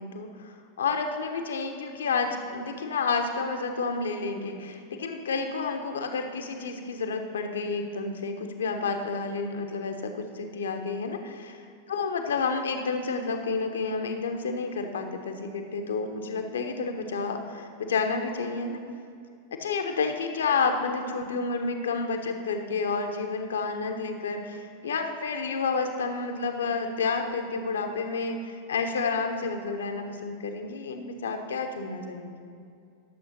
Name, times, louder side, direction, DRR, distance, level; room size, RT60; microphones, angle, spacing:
voice 1, 0.0-11.6 11.9-18.8 19.6-32.5, left 4 dB, 65° left, 5 dB, 1.1 m, -30 dB
11.5 x 7.2 x 5.6 m, 2.4 s
figure-of-eight pair, 90°, 0 cm